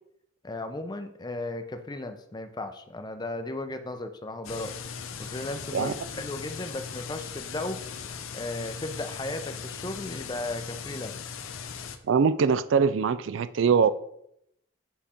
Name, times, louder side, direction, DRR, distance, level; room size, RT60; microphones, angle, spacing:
voice 1, 0.4-4.8 5.2-7.8 8.3-11.2, left 2 dB, 20° left, 8 dB, 0.6 m, -35 dB
sound 1, 4.4-12.0, left 6 dB, 85° left, 0.7 m, -39 dB
voice 2, 12.1-13.9, right 6 dB, 65° right, 14 dB, 0.3 m, -22 dB
7.3 x 5.1 x 4.3 m, 0.76 s
head